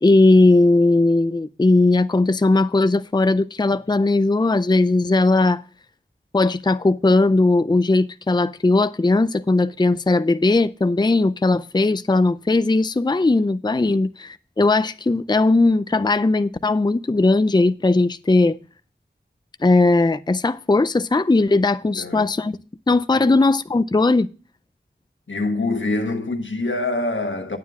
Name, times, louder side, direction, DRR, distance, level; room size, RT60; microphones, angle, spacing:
voice 1, 0.0-5.6 6.3-18.6 19.6-22.6 22.9-24.3, left 2 dB, 25° left, 0.4 m, -18 dB
voice 2, 21.9-22.3 23.1-23.3 25.3-27.6, left 2 dB, 85° left, 1.5 m, -25 dB
9.4 x 9.3 x 3.6 m
wide cardioid pair, 45°, 19 cm